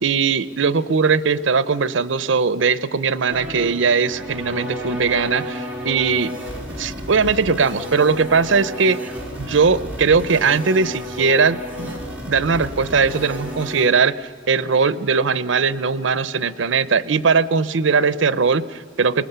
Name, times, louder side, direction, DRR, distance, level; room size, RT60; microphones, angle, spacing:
voice 1, 0.0-6.3 6.8-12.0 12.3-19.2, right 5 dB, 75° right, 16 dB, 0.6 m, -19 dB
sound 1, 3.3-13.9, left 1 dB, 10° right, 3.8 m, -32 dB
23.0 x 19.5 x 6.8 m, 2.1 s
head